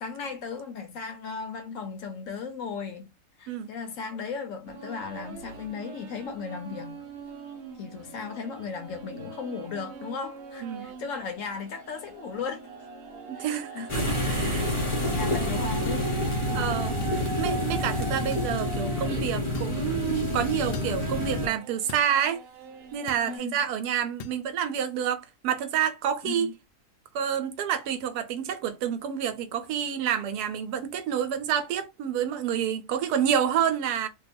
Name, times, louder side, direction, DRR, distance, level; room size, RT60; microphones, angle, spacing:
voice 1, 0.0-3.1 3.4-7.0 7.8-12.6 13.3-14.1 14.5-16.1 16.5-17.0 23.3-23.6 26.2-26.5, left 5 dB, 65° left, 0.9 m, -36 dB
sound 1, 4.7-23.4, right 5 dB, 55° right, 0.7 m, -41 dB
voice 2, 10.6-10.9 13.3-14.7 15.2-15.5 16.5-17.0 17.4-22.4 22.9-26.5 27.1-34.1, right 9 dB, 85° right, 1.1 m, -28 dB
sound 2, 13.9-21.5, left 1 dB, 35° left, 0.5 m, -28 dB
sound 3, 15.6-15.7 17.0-17.2 18.3-18.5 19.5-19.8 20.7-21.0 21.9-22.2 23.1-23.3 24.2-24.4, left 5 dB, 90° left, 0.5 m, -41 dB
2.7 x 2.3 x 4.1 m
omnidirectional pair, 1.7 m